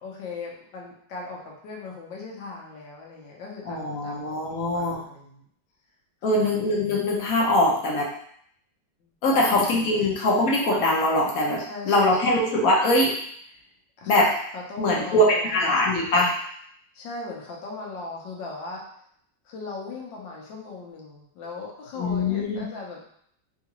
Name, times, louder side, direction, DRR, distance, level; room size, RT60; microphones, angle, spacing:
voice 1, 0.0-4.4 4.7-5.5 6.3-6.6 9.0-10.0 11.7-12.4 14.0-14.2 14.5-16.1 16.9-18.8 19.4-23.0, left 3 dB, 80° left, -2 dB, 1.5 m, -39 dB
voice 2, 3.6-5.0 6.2-8.1 9.2-13.1 14.1-14.3 14.8-16.3 22.0-22.6, left 1 dB, 60° left, -2 dB, 1.0 m, -22 dB
3.7 x 2.4 x 2.9 m, 0.66 s
omnidirectional pair, 2.0 m